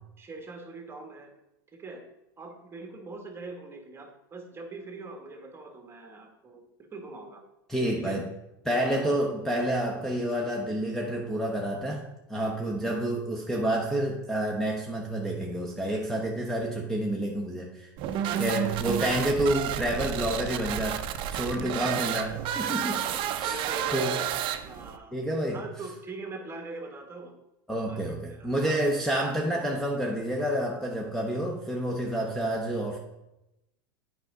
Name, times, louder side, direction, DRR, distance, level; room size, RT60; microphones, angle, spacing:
voice 1, 0.2-1.3 1.7-2.0 2.4-6.6 6.9-7.4 8.0-8.3 8.9-9.1 18.2-18.8 21.6-21.9 23.4-24.2 24.6-25.1 25.5-27.3 27.7-28.0 28.3-28.8, right 3 dB, 20° right, 4 dB, 1.4 m, -42 dB
voice 2, 7.7-8.3 8.6-17.9 18.4-24.2 25.1-25.6 27.7-33.0, right 1 dB, 5° left, -1 dB, 0.9 m, -29 dB
sound 1, 18.0-25.0, right 10 dB, 45° right, 0.5 m, -31 dB
8.2 x 4.9 x 3.8 m, 0.91 s
hypercardioid pair, 95°, 12 cm